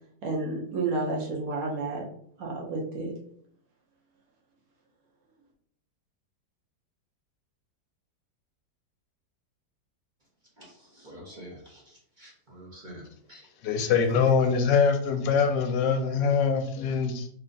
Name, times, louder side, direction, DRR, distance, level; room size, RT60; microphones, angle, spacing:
voice 1, 0.2-2.0 2.4-3.1, right 3 dB, 60° right, -2 dB, 1.1 m, -30 dB
voice 2, 10.6-13.0 13.3-13.5 13.7-14.1, equal, 35° right, -4 dB, 0.8 m, -47 dB
voice 3, 13.6-17.3, left 5 dB, 85° left, 6 dB, 1.2 m, -23 dB
3.3 x 2.5 x 3.9 m, 0.64 s
omnidirectional pair, 1.9 m